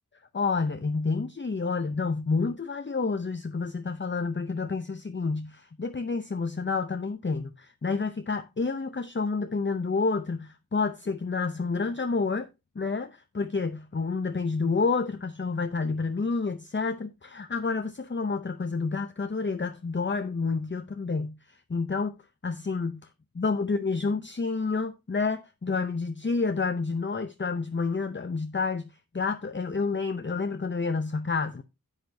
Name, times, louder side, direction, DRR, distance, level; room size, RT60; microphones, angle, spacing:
voice 1, 0.3-12.5 12.8-22.2 22.4-23.1 23.4-31.6, left 4 dB, 35° left, 0.6 m, -29 dB
10.5 x 8.2 x 2.7 m
wide cardioid pair, 50°, 35 cm